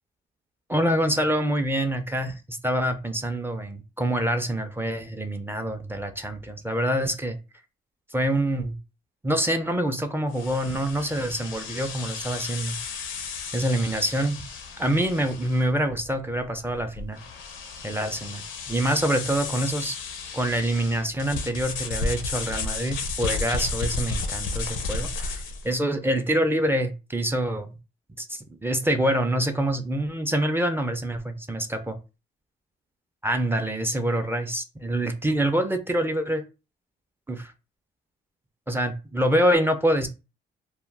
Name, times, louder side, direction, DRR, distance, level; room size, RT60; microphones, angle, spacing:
voice 1, 0.7-7.4 8.1-8.8 9.2-12.8 13.5-14.4 14.8-17.2 17.8-18.4 18.7-20.0 20.3-27.7 28.2-32.0 33.2-36.4 37.3-37.5 38.7-40.1, right 1 dB, 10° right, 7 dB, 0.4 m, -26 dB
sound 1, 10.3-25.7, left 4 dB, 75° left, 0.5 m, -33 dB
2.2 x 2.0 x 3.1 m, 0.29 s
cardioid pair, 90°, 20 cm